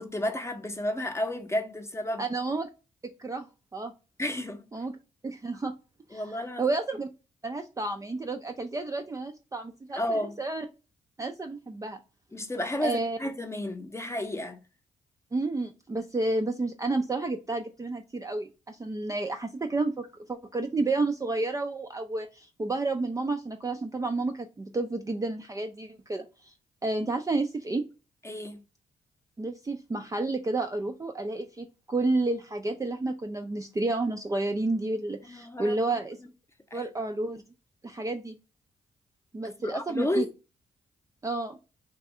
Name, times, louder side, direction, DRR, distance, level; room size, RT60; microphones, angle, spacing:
voice 1, 0.0-2.3 4.2-4.7 6.1-6.6 10.0-10.4 12.3-14.6 28.2-28.6 35.2-35.8 36.7-36.9 39.6-40.3, left 1 dB, 15° left, 0.7 m, -32 dB
voice 2, 2.2-2.7 3.2-3.9 4.7-5.0 5.2-5.7 6.1-7.1 7.4-10.7 11.2-12.0 12.8-13.2 15.3-26.5 26.8-27.8 29.4-36.2 36.7-37.4 37.8-38.4 39.3-40.3 41.2-41.6, right 2 dB, 20° right, 0.4 m, -31 dB
2.6 x 2.4 x 4.1 m
supercardioid pair, 50°, 17 cm